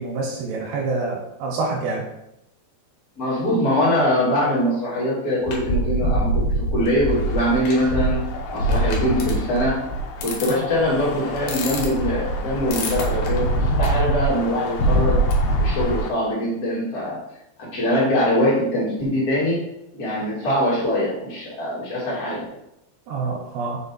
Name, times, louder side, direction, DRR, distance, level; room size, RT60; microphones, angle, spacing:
voice 1, 0.0-2.0 10.5-10.6 23.1-23.8, right 3 dB, 70° right, -1 dB, 2.6 m, -27 dB
voice 2, 3.2-8.3 8.5-9.8 10.2-15.2 15.6-17.2 17.7-19.6 19.9-22.4, equal, 50° left, -7 dB, 1.1 m, -22 dB
sound 1, 5.5-16.0, right 1 dB, 70° left, 2.4 m, -23 dB
sound 2, 7.1-16.1, left 5 dB, 85° left, 2.3 m, -35 dB
6.6 x 4.5 x 4.3 m, 0.83 s
omnidirectional pair, 5.9 m